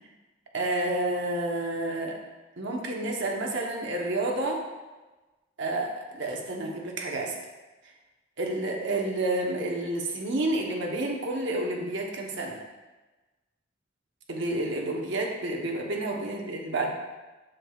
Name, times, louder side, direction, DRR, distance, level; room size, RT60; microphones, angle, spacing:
voice 1, 0.5-2.2 2.6-4.6 5.6-7.4 8.4-12.6 14.3-16.9, right 2 dB, 65° right, 0 dB, 1.0 m, -30 dB
7.3 x 6.5 x 2.4 m, 1.2 s
head